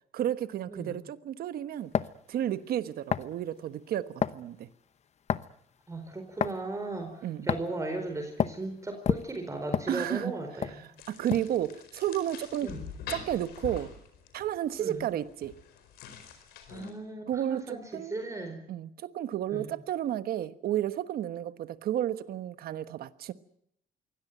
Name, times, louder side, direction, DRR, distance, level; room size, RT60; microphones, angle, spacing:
voice 1, 0.1-1.9 2.3-4.7 7.2-7.5 9.9-10.3 11.1-12.7 13.1-13.9 14.3-15.6 17.3-18.1 18.7-23.3, right 11 dB, 70° right, 1.3 m, -32 dB
sound 1, 1.9-2.2 3.1-3.3 4.2-4.4 5.3-5.6 6.4-6.6 7.5-7.8 8.4-8.6 9.0-10.3 10.6-10.8 11.3-11.6, left 8 dB, 45° left, 0.9 m, -29 dB
voice 2, 5.9-10.9 12.6-12.9 14.8-15.1 16.7-18.7 19.5-19.6, right 2 dB, 20° right, 4.4 m, -37 dB
sound 2, 11.0-16.9, left 7 dB, 85° left, 4.6 m, -45 dB
23.5 x 17.5 x 9.3 m
cardioid pair, 100°, 16 cm